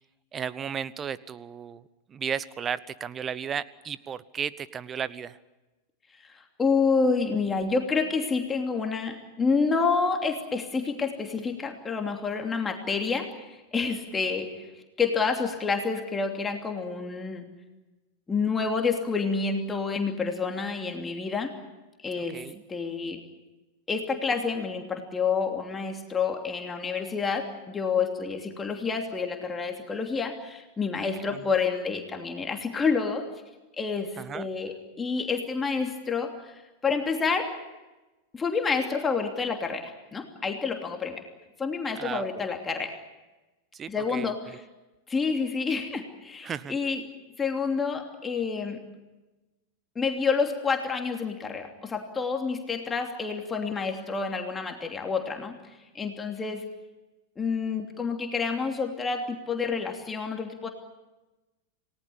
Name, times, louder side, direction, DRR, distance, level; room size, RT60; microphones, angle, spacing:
voice 1, 0.3-5.4 22.2-22.6 30.9-31.5 34.2-34.5 41.9-42.4 43.7-44.3 46.4-46.8, right 7 dB, 25° right, 18 dB, 1.0 m, -35 dB
voice 2, 6.2-14.5 15.0-17.4 18.3-21.5 22.0-22.4 22.7-23.2 23.9-33.3 33.8-37.5 38.3-41.2 41.6-43.0 43.9-44.4 45.1-47.0 47.4-48.8 49.9-55.6 55.9-56.6 57.4-60.7, left 5 dB, 15° left, 3 dB, 2.9 m, -28 dB
29.0 x 19.0 x 8.7 m, 1.1 s
figure-of-eight pair, 90°, 0 cm